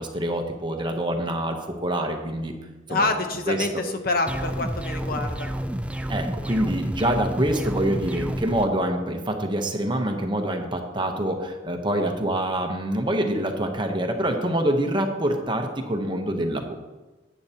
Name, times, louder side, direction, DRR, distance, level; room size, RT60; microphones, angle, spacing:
voice 1, 0.0-2.5 2.9-3.1 3.5-3.6 6.1-16.8, right 1 dB, 25° right, 4 dB, 0.9 m, -26 dB
voice 2, 2.9-5.5, left 3 dB, 50° left, 5 dB, 0.9 m, -26 dB
sound 1, 4.3-8.7, equal, 5° right, 0.3 m, -30 dB
10.0 x 9.4 x 2.9 m, 1.2 s
head